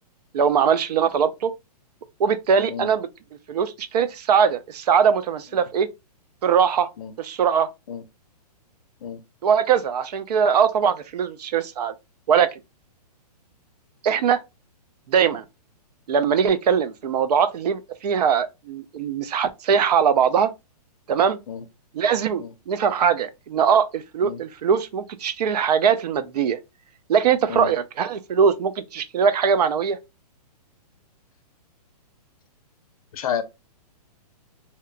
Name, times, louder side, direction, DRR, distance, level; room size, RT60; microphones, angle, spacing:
voice 1, 0.3-1.5 2.2-3.1 3.5-5.9 6.4-6.9 7.2-7.7 9.4-11.9 12.3-12.5 14.0-14.4 15.1-15.4 16.1-20.5 21.1-21.4 21.9-26.6 27.1-30.0, right 7 dB, 75° right, 0.4 m, -21 dB
voice 2, 2.7-2.9 7.0-7.1 7.9-8.0 9.0-9.2 21.5-21.6 22.4-22.5 24.2-24.4 27.5-27.7 33.1-33.4, left 8 dB, 60° left, 0.5 m, -30 dB
2.8 x 2.1 x 2.3 m
hypercardioid pair, 160°, 21 cm